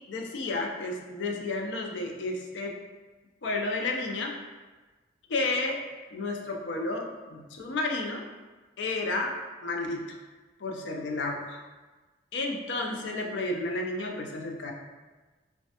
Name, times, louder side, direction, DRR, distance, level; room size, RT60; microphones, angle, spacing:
voice 1, 0.1-2.7 3.4-4.3 5.3-5.8 6.1-8.2 8.8-9.3 9.6-10.2 10.6-11.6 12.3-14.7, left 2 dB, 70° left, 1 dB, 0.4 m, -31 dB
3.1 x 2.2 x 2.8 m, 1.3 s
head